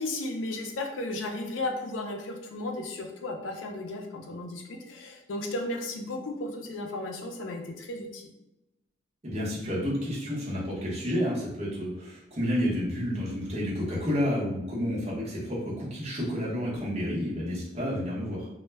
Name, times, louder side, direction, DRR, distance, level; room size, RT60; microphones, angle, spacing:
voice 1, 0.0-8.3, left 2 dB, 85° left, 3 dB, 0.4 m, -34 dB
voice 2, 9.2-18.5, equal, 35° right, -6 dB, 0.8 m, -30 dB
2.1 x 2.1 x 3.3 m, 0.93 s
head